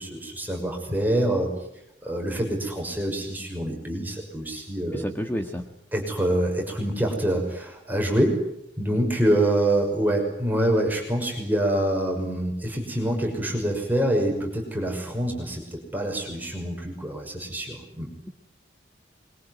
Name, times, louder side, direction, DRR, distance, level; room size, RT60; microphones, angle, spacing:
voice 1, 0.0-1.5 2.0-5.1 5.9-8.4 8.8-18.1, right 1 dB, 10° right, 1 dB, 6.0 m, -26 dB
voice 2, 4.9-5.7, equal, 10° left, 4 dB, 1.7 m, -30 dB
25.0 x 23.0 x 9.6 m, 0.77 s
head